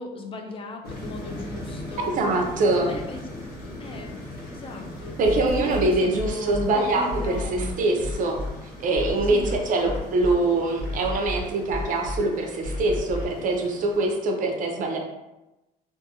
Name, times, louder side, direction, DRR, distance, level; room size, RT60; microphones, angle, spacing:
voice 1, 0.0-2.1 2.8-3.3 3.8-4.2 4.5-8.0 9.2-10.4, left 3 dB, 30° left, 3 dB, 0.4 m, -37 dB
sound 1, 0.8-14.1, left 1 dB, 65° left, 1.1 m, -40 dB
voice 2, 2.0-2.9 5.2-8.4 8.8-15.0, right 2 dB, 50° right, 2 dB, 0.5 m, -24 dB
sound 2, 5.2-6.7 7.1-8.5 8.9-10.3 10.8-12.2 12.6-13.2, equal, 90° left, 0.7 m, -31 dB
2.5 x 2.5 x 2.7 m, 1.0 s
cardioid pair, 110°, 17 cm